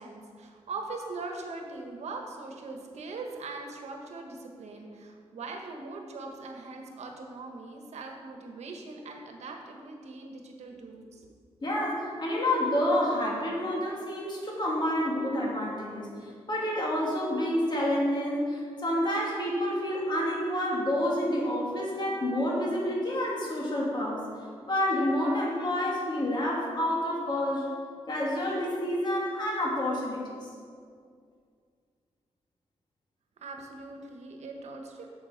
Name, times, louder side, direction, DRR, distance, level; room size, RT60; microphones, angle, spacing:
voice 1, 0.0-11.3 33.4-35.1, right 3 dB, 85° right, 2 dB, 1.1 m, -41 dB
voice 2, 11.6-24.2 24.7-27.7 28.1-30.5, left 1 dB, 45° left, -3 dB, 2.4 m, -28 dB
7.4 x 7.4 x 5.1 m, 2.2 s
cardioid pair, 85°, 11 cm